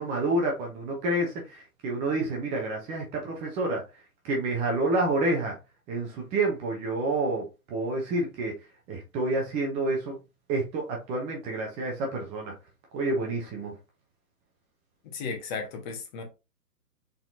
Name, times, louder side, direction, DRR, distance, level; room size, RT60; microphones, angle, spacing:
voice 1, 0.0-3.8 4.2-5.6 5.9-8.6 8.9-10.2 10.5-12.5 12.9-13.7, right 2 dB, 15° right, 0.7 m, -28 dB
voice 2, 15.1-16.2, left 5 dB, 30° left, 1.3 m, -35 dB
4.3 x 3.8 x 2.7 m
figure-of-eight pair, 130°, 47 cm